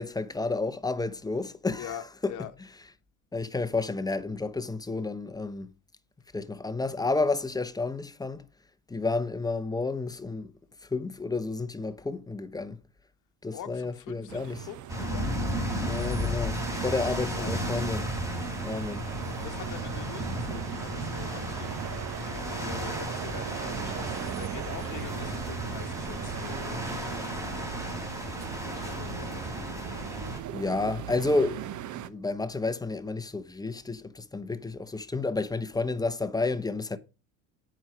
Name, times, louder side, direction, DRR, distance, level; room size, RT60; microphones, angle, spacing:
voice 1, 0.0-2.0 2.2-2.3 3.3-5.7 6.3-8.4 8.9-10.5 10.9-12.8 13.4-14.7 15.8-18.1 18.6-19.0 30.5-31.7 32.1-37.0, left 3 dB, 10° left, 0.8 m, -31 dB
voice 2, 1.8-2.5 13.5-15.3 17.2-17.7 19.3-26.8 28.5-29.5, left 11 dB, 45° left, 1.1 m, -44 dB
sound 1, 14.3-32.1, right 10 dB, 45° right, 0.9 m, -39 dB
sound 2, 14.9-30.4, equal, 10° right, 3.4 m, -34 dB
8.8 x 5.1 x 6.0 m
supercardioid pair, 90°, 41 cm